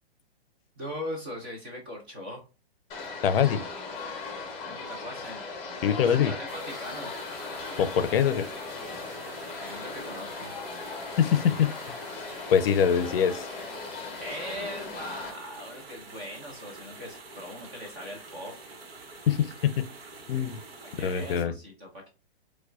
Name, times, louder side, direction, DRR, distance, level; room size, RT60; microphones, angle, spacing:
voice 1, 0.8-2.4 4.7-7.1 9.6-10.5 14.2-18.7 20.8-22.1, equal, 15° right, 0.3 m, -40 dB
sound 1, 2.9-15.3, left 4 dB, 20° left, 0.7 m, -38 dB
voice 2, 3.2-3.6 5.8-6.3 7.8-8.4 11.2-11.7 12.5-13.4 19.3-19.8 20.3-20.6 21.0-21.5, left 8 dB, 65° left, 0.5 m, -23 dB
sound 2, 6.5-21.5, right 3 dB, 70° right, 1.2 m, -47 dB
4.5 x 2.3 x 2.3 m
hypercardioid pair, 145°, 31 cm